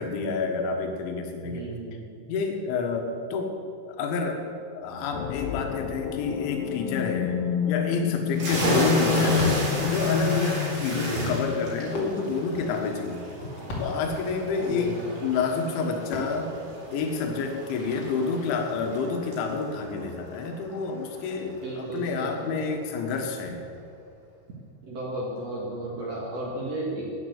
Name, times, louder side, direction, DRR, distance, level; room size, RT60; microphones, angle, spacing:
voice 1, 0.0-1.6 2.3-3.5 3.9-7.4 7.7-13.3 13.8-16.5 16.9-23.6, left 4 dB, 75° left, 4 dB, 3.5 m, -29 dB
voice 2, 1.4-2.2 8.8-9.2 10.9-11.3 14.7-15.2 21.6-22.5 24.9-27.2, right 2 dB, 55° right, -4 dB, 1.8 m, -34 dB
sound 1, 5.1-12.9, left 9 dB, 90° left, 3.3 m, -29 dB
sound 2, 8.3-21.7, right 1 dB, 35° right, 4.0 m, -33 dB
Fireworks, 9.1-19.3, left 1 dB, 45° left, 1.7 m, -41 dB
11.0 x 9.0 x 8.1 m, 2.4 s
omnidirectional pair, 5.9 m